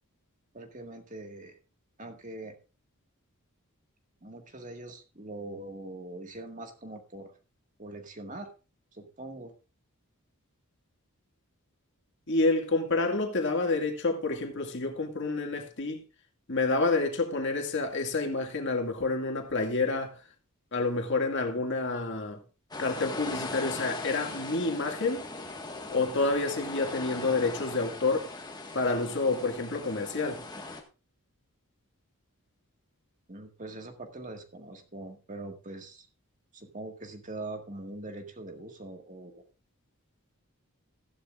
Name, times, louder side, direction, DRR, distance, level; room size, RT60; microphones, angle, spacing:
voice 1, 0.5-1.6 2.0-2.6 4.2-7.3 7.8-8.5 8.9-9.5 33.3-36.1 36.5-39.4, right 2 dB, 35° right, 1.8 m, -42 dB
voice 2, 12.3-16.0 16.5-20.2 20.7-22.4 22.8-25.3 25.9-28.3 28.7-30.4, left 3 dB, 55° left, 2.1 m, -28 dB
sound 1, 22.7-30.8, left 2 dB, 20° left, 1.5 m, -39 dB
14.5 x 11.5 x 2.5 m
head